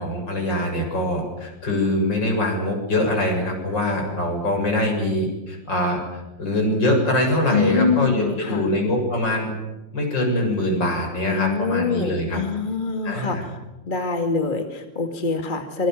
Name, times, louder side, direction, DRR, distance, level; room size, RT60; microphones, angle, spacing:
voice 1, 0.0-6.0 6.4-9.5 9.9-12.4 13.0-13.4, left 1 dB, 70° left, 2 dB, 8.1 m, -23 dB
voice 2, 7.5-8.7 11.2-13.4 13.9-15.9, left 4 dB, 25° left, 5 dB, 2.3 m, -25 dB
26.0 x 23.5 x 7.7 m, 1.0 s
omnidirectional pair, 2.0 m